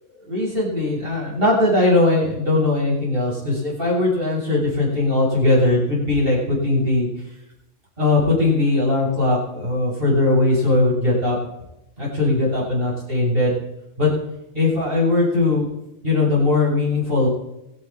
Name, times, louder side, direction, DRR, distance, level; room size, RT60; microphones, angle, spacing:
voice 1, 0.2-7.1 8.0-11.4 12.0-13.6 14.0-14.1 14.5-15.7 16.0-17.3, left 2 dB, 50° right, -5 dB, 8.3 m, -19 dB
25.0 x 10.5 x 4.5 m, 0.87 s
omnidirectional pair, 1.2 m